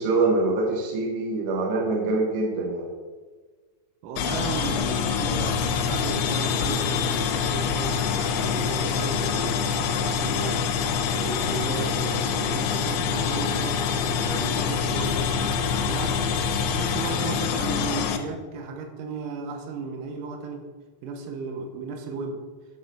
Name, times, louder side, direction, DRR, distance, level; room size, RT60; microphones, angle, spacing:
voice 1, 0.0-2.9, right 3 dB, 70° right, -2 dB, 2.7 m, -24 dB
voice 2, 4.0-10.7 11.1-20.7 21.0-22.4, right 4 dB, 90° right, 3 dB, 3.8 m, -35 dB
sound 1, 4.2-18.2, left 6 dB, 85° left, 2.4 m, -25 dB
10.5 x 4.4 x 6.8 m, 1.4 s
omnidirectional pair, 5.9 m